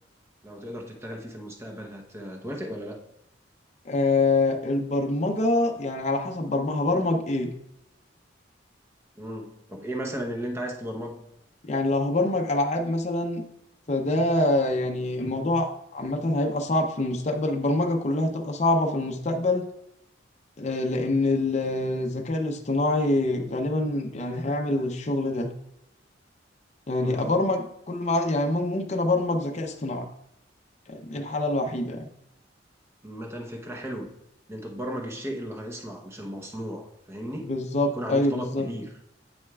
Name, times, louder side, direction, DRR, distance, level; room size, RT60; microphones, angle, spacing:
voice 1, 0.4-3.0 9.2-11.2 27.0-27.3 33.0-34.1 34.5-37.5 37.9-38.9, equal, 15° right, 1 dB, 0.8 m, -35 dB
voice 2, 3.8-7.5 11.6-13.4 13.9-19.7 20.6-25.5 26.9-30.1 30.9-32.1 37.4-38.7, left 2 dB, 35° left, 3 dB, 0.6 m, -25 dB
8.6 x 6.3 x 2.3 m, 0.78 s
head